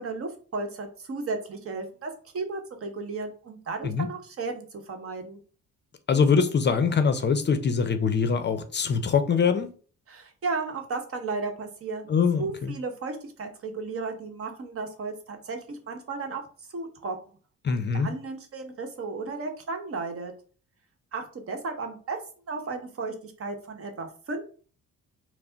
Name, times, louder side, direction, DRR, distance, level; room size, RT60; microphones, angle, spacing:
voice 1, 0.0-5.4 10.1-12.1 12.4-16.4 16.7-17.2 17.7-20.3 21.1-22.2 22.5-24.4, right 3 dB, 50° right, 0.9 m, -34 dB
voice 2, 6.1-9.7 12.1-12.7 17.6-18.1, left 6 dB, 35° left, 0.5 m, -23 dB
4.7 x 2.0 x 3.8 m
cardioid pair, 90°, 30 cm